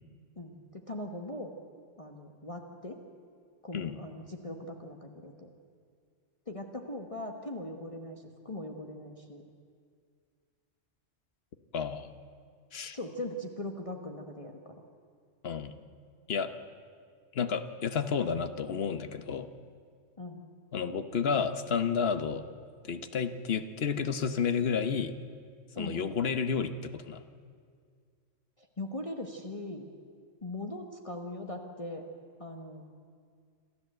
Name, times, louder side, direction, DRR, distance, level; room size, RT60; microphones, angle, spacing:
voice 1, 0.4-1.6 2.0-3.0 3.6-5.5 6.5-9.4 12.9-14.7 20.2-20.4 25.7-26.1 28.6-29.9 30.4-32.1 32.4-32.8, left 1 dB, 25° left, 2 dB, 1.3 m, -40 dB
voice 2, 11.7-12.1 12.7-13.0 15.4-15.7 16.3-16.5 17.3-19.5 20.7-22.4 22.9-25.1 25.8-27.2, left 6 dB, 55° left, 10 dB, 1.2 m, -31 dB
27.5 x 13.0 x 7.9 m, 2.1 s
omnidirectional pair, 1.3 m